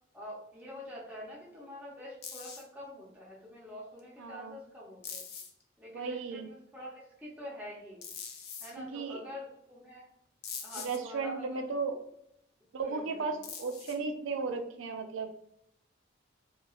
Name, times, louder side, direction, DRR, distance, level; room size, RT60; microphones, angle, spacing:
voice 1, 0.1-5.3 5.8-8.0 8.6-10.0 10.6-11.7 12.8-13.4, left 1 dB, 5° right, -6 dB, 0.5 m, -46 dB
sound 1, 2.2-2.6 4.0-4.1 5.0-5.6 8.0-8.7 10.4-11.0 13.4-14.1, left 6 dB, 55° left, 0.4 m, -42 dB
voice 2, 4.2-4.6 5.9-6.5 8.8-9.2 10.8-12.0 12.7-15.3, right 4 dB, 90° right, 6 dB, 0.4 m, -35 dB
3.0 x 2.3 x 2.3 m, 0.75 s
head